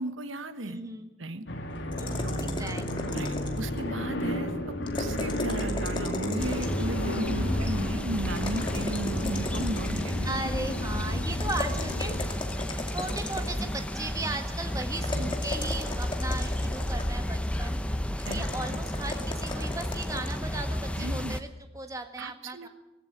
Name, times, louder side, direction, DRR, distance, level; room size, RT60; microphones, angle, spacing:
voice 1, 0.0-0.8 1.2-1.5 2.2-2.5 3.1-10.4 15.1-15.3 18.2-18.4 18.7-18.8 21.0-21.3 22.2-22.7, right 1 dB, 90° right, 11 dB, 1.3 m, -35 dB
voice 2, 0.6-1.1 2.0-3.1 7.4-7.8 10.2-12.2 12.9-17.8 18.2-22.7, right 2 dB, 15° right, 6 dB, 1.5 m, -37 dB
sound 1, 1.5-12.3, left 1 dB, 75° left, 3.0 m, -32 dB
sound 2, 1.9-3.8 4.8-6.9 8.3-10.3 11.4-13.7 15.0-17.2 18.2-20.4, left 2 dB, 25° left, 2.4 m, -37 dB
sound 3, 6.4-21.4, left 1 dB, 5° left, 0.8 m, -32 dB
18.0 x 16.0 x 8.9 m, 1.1 s
head